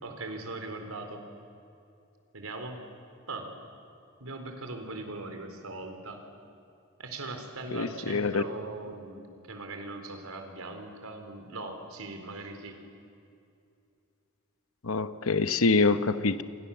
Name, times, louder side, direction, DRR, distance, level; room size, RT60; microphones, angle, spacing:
voice 1, 0.0-1.2 2.3-2.8 3.3-3.6 4.2-6.2 7.0-12.8, right 2 dB, 85° right, 5 dB, 4.1 m, -40 dB
voice 2, 7.7-8.4 14.8-16.4, left 3 dB, 75° left, 12 dB, 1.0 m, -25 dB
29.0 x 27.5 x 7.3 m, 2.6 s
head